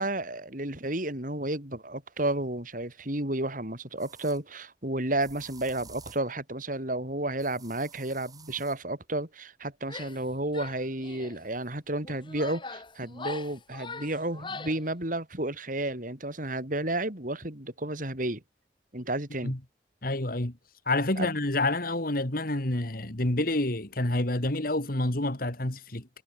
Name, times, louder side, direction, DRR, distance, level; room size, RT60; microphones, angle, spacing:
voice 1, 0.0-18.4 18.9-19.6 21.2-21.3, right 1 dB, 45° right, 4.8 m, -32 dB
sound 1, 4.0-4.4 5.2-6.3 7.4-8.8, right 5 dB, 20° right, 4.7 m, -51 dB
Female speech woman speaking / Yell, 9.8-10.3 10.5-11.4 12.0-14.9, left 4 dB, 25° left, 3.5 m, -41 dB
voice 2, 20.0-20.5 20.9-26.1, left 2 dB, 50° left, 2.4 m, -28 dB
head